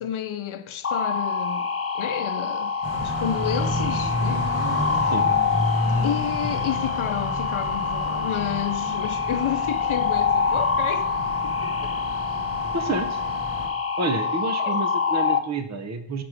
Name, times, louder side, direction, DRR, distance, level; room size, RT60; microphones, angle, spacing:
voice 1, 0.0-1.7 1.9-2.7 3.0-4.5 4.9-5.1 6.0-11.1 11.4-12.0 14.6-14.8, left 9 dB, 75° left, 0.6 m, -31 dB
sound 1, 0.8-15.4, left 5 dB, 30° left, 0.4 m, -26 dB
sound 2, 2.8-13.7, equal, 65° right, 1.7 m, -31 dB
voice 2, 12.7-13.2 14.0-16.2, right 3 dB, 35° right, 0.6 m, -29 dB
6.0 x 4.8 x 5.0 m
wide cardioid pair, 75°, 49 cm